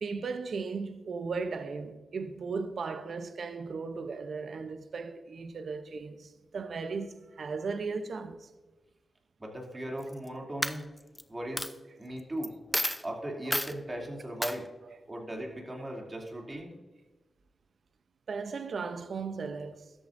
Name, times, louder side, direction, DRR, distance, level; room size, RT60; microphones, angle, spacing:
voice 1, 0.0-8.5 13.4-13.5 18.3-19.9, right 4 dB, 70° right, 0.7 m, -36 dB
voice 2, 9.4-10.9 11.3-12.5 13.0-14.7 15.1-16.7, right 1 dB, 30° right, 2.8 m, -38 dB
Coin (dropping), 10.0-10.3 10.6-11.2 11.6-11.7 12.4-12.5 12.7-13.0 13.5-13.7 14.4-14.6, equal, 5° left, 0.7 m, -30 dB
13.0 x 8.7 x 2.6 m
cardioid pair, 45°, 0 cm